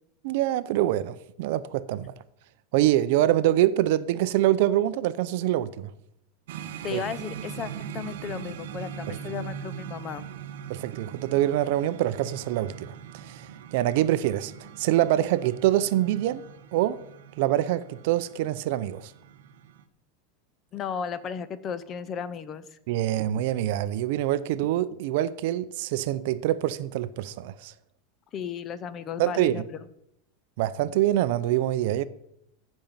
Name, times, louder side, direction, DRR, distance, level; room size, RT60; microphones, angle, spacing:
voice 1, 0.2-2.1 2.7-5.9 6.9-7.0 9.1-9.2 10.7-14.5 14.8-16.4 16.7-17.0 17.4-19.1 22.9-27.7 29.2-29.6 30.6-32.0, right 13 dB, 50° right, 0.5 m, -25 dB
sound 1, 6.5-19.8, right 8 dB, 70° right, 1.0 m, -41 dB
voice 2, 6.6-10.2 20.7-22.6 28.3-29.6, left 7 dB, 20° left, 0.5 m, -35 dB
14.5 x 5.3 x 7.3 m
supercardioid pair, 180°, 0 cm